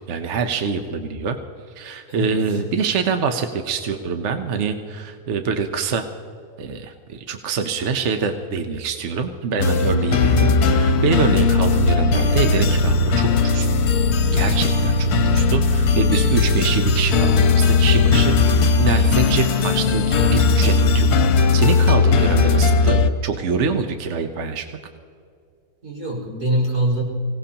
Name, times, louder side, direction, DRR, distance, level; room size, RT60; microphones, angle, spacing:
voice 1, 0.0-1.4 1.8-6.1 6.6-13.7 14.3-21.1 21.4-24.7, right 5 dB, 55° right, 6 dB, 1.0 m, -25 dB
voice 2, 2.1-2.6 25.8-27.0, right 1 dB, 70° right, -5 dB, 5.2 m, -23 dB
sound 1, 9.6-23.1, left 4 dB, 70° left, 1.4 m, -17 dB
24.5 x 17.5 x 2.9 m, 2.3 s
omnidirectional pair, 1.7 m